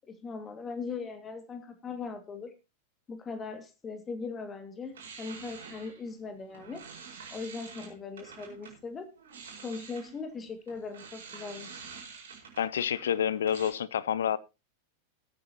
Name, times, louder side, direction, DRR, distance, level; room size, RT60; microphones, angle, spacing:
voice 1, 0.1-2.5 3.1-6.8 7.3-9.1 9.6-11.7, left 4 dB, 20° left, 2.1 m, -39 dB
sound 1, 4.9-8.8 9.2-13.7, right 6 dB, 65° right, 4.8 m, -48 dB
voice 2, 12.6-14.4, left 9 dB, 65° left, 0.6 m, -28 dB
19.0 x 8.8 x 2.9 m
figure-of-eight pair, 90°, 0 cm